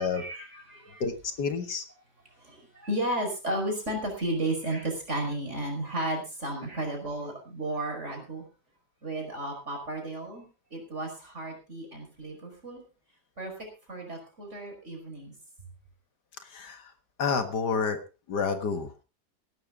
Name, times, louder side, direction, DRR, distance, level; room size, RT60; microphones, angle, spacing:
voice 1, 0.0-1.0 2.4-8.5 9.0-12.8 13.4-13.5 13.9-15.3, right 1 dB, 40° right, 2 dB, 5.9 m, -33 dB
voice 2, 1.0-1.8 16.4-16.9 17.2-18.0 18.3-18.9, left 5 dB, 70° left, 8 dB, 2.2 m, -29 dB
18.0 x 11.5 x 3.7 m, 0.31 s
omnidirectional pair, 1.8 m